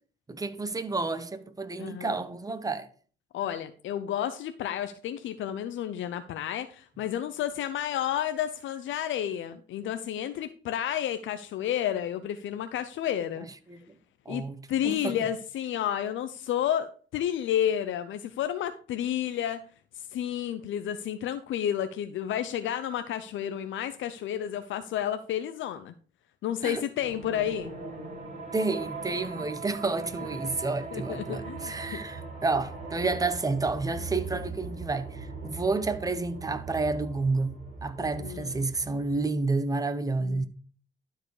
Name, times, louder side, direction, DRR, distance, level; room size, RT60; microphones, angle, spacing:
voice 1, 0.3-2.9 13.7-13.8 14.3-15.2 26.6-26.8 28.5-40.5, right 3 dB, 20° right, 1.0 m, -30 dB
voice 2, 1.8-2.2 3.3-13.5 14.3-14.4 14.7-19.6 19.9-25.9 26.4-27.7 30.4-30.6 30.9-31.7 38.2-38.6 40.2-40.4, left 10 dB, 75° left, 0.6 m, -31 dB
sound 1, 27.0-39.2, right 4 dB, 40° right, 5.4 m, -40 dB
12.0 x 4.7 x 4.9 m
cardioid pair, 90°, 20 cm